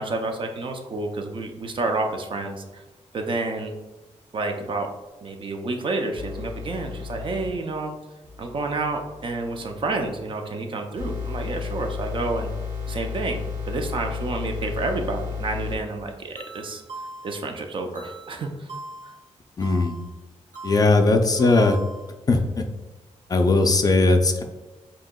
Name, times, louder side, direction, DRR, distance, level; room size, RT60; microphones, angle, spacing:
voice 1, 0.0-2.8 3.1-3.7 4.3-4.9 5.2-8.0 8.4-12.5 12.9-16.8 17.2-18.7 19.0-19.1, right 3 dB, 45° right, 3 dB, 0.5 m, -29 dB
sound 1, 6.1-7.5 8.2-10.2 11.0-15.8 16.4-17.4 18.0-19.2 19.6-20.1 20.5-22.4, left 5 dB, 90° right, 1.2 m, -35 dB
voice 2, 19.6-19.9 20.6-21.8 22.3-22.6 23.3-24.4, left 3 dB, 30° left, 5 dB, 0.4 m, -19 dB
7.5 x 2.8 x 2.3 m, 1.1 s
wide cardioid pair, 155°, 12 cm